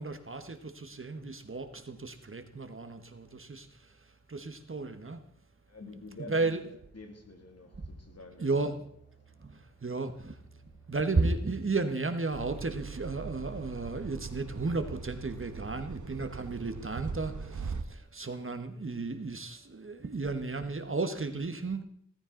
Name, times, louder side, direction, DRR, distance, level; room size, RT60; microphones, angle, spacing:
voice 1, 0.0-3.9 4.3-5.2 6.3-6.6 7.8-7.9 8.4-8.9 9.4-10.4 10.9-21.8, right 3 dB, 45° right, 1.3 m, -34 dB
voice 2, 5.7-6.5 6.9-8.8, left 2 dB, 60° left, 2.6 m, -48 dB
sound 1, 6.0-14.3, right 5 dB, 35° left, 7.6 m, -63 dB
sound 2, 12.3-17.8, right 5 dB, 90° right, 1.2 m, -41 dB
17.0 x 14.5 x 3.9 m
wide cardioid pair, 80°, 29 cm